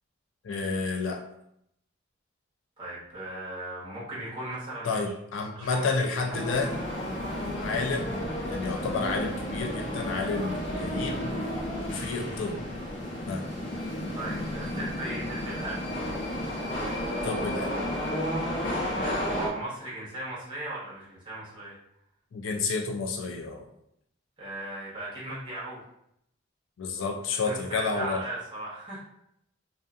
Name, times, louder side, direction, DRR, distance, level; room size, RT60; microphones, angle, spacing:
voice 1, 0.4-1.2 4.8-6.7 7.6-11.4 11.9-12.6 13.3-13.4 17.2-17.8 22.3-23.7 26.8-28.2, left 4 dB, 80° left, 2 dB, 0.4 m, -30 dB
voice 2, 2.8-5.0 5.5-6.3 14.1-15.9 18.9-21.7 24.4-25.8 27.4-29.0, right 2 dB, 25° right, -8 dB, 1.0 m, -37 dB
sound 1, 6.3-19.5, equal, 60° left, 0.9 m, -32 dB
2.4 x 2.3 x 2.5 m, 0.76 s
head